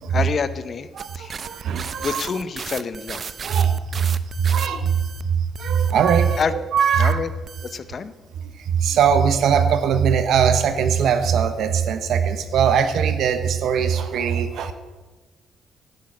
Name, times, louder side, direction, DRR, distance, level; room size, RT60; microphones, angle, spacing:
voice 1, 0.1-1.4 2.0-3.3 6.4-6.5 7.0-7.3 7.6-8.1, left 5 dB, 45° left, 14 dB, 0.7 m, -27 dB
sound 1, 1.0-5.2 5.5-6.4 6.8-7.1 7.5-7.8, right 6 dB, 45° right, 0.5 m, -36 dB
voice 2, 1.0-2.2 3.4-5.0 5.2-7.2 8.6-14.7, right 7 dB, 75° right, 10 dB, 0.8 m, -20 dB
10.5 x 6.4 x 8.5 m, 1.2 s
cardioid pair, 90°, 0 cm